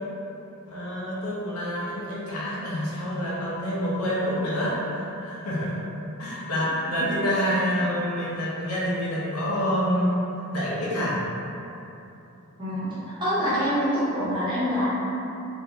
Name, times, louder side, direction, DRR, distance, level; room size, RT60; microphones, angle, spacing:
voice 1, 0.7-5.8 6.2-10.2 10.5-11.2 11.7-11.8, equal, 80° left, -7 dB, 0.8 m, -27 dB
voice 2, 12.6-14.9, equal, 20° right, -12 dB, 1.0 m, -25 dB
2.7 x 2.6 x 3.3 m, 2.9 s
head